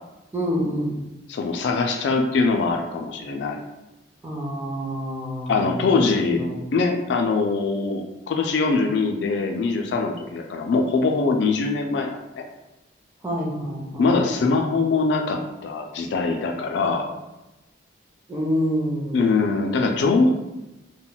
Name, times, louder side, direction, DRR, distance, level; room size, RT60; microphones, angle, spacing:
voice 1, 0.3-0.9 4.2-5.9 6.4-6.5 13.2-14.2 18.3-19.3, equal, 10° right, -4 dB, 0.5 m, -27 dB
voice 2, 1.3-3.6 5.5-6.5 6.7-12.4 14.0-17.1 19.1-20.3, left 4 dB, 60° left, 2 dB, 0.3 m, -22 dB
2.2 x 2.1 x 3.8 m, 0.99 s
head